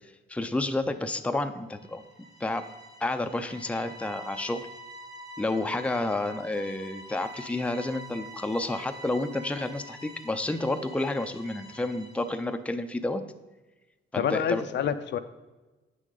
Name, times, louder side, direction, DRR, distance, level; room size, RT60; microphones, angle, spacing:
voice 1, 0.3-2.6 3.0-4.7 5.4-13.2 14.1-14.6, left 2 dB, 5° left, 8 dB, 0.5 m, -30 dB
sound 1, 1.8-12.5, right 1 dB, 20° right, 1.2 m, -46 dB
voice 2, 14.1-15.2, left 8 dB, 65° left, 10 dB, 0.5 m, -27 dB
8.4 x 6.3 x 3.9 m, 1.2 s
cardioid pair, 90°, 20 cm